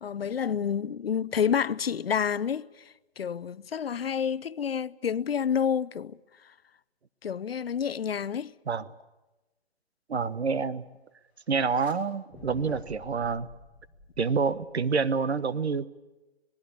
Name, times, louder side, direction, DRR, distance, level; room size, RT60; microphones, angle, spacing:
voice 1, 0.0-2.8 3.2-6.2 7.2-8.5, left 7 dB, 65° left, 0.8 m, -29 dB
voice 2, 10.1-10.8 11.5-13.5 14.2-15.9, right 5 dB, 80° right, 1.3 m, -27 dB
sound 1, 11.5-12.0 12.3-14.9, left 3 dB, 5° left, 1.9 m, -49 dB
26.5 x 19.5 x 8.4 m
hypercardioid pair, 170°, 32 cm